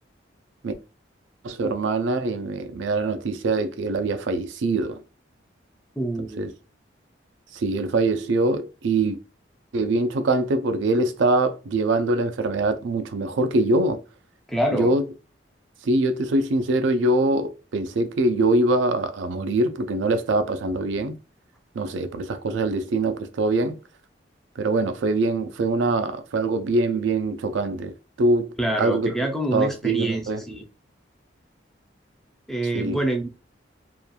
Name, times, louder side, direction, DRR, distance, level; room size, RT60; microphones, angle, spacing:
voice 1, 1.4-5.0 6.2-6.5 7.5-9.2 9.7-14.0 14.7-15.0 15.8-21.1 21.8-23.8 24.6-29.1 29.5-30.4 32.7-33.0, right 2 dB, 75° right, 0.4 m, -23 dB
voice 2, 6.0-6.5 14.5-14.9 28.6-30.6 32.5-33.3, right 1 dB, ahead, 0.4 m, -26 dB
2.9 x 2.3 x 2.2 m
head